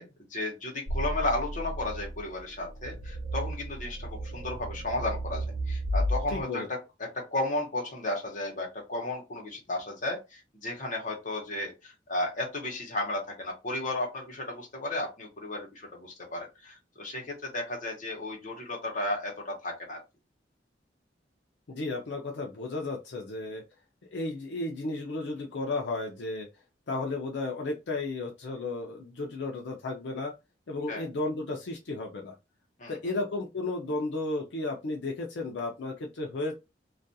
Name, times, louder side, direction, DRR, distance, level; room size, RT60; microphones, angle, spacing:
voice 1, 0.0-20.0 30.9-31.1 32.8-33.0, left 2 dB, 45° left, 0.9 m, -34 dB
sound 1, 0.9-6.4, equal, 80° right, 0.6 m, -33 dB
voice 2, 6.3-6.7 21.7-23.6 24.1-26.5 26.9-30.3 30.7-32.3 32.9-36.5, left 2 dB, 80° left, 0.5 m, -33 dB
2.4 x 2.3 x 2.6 m
head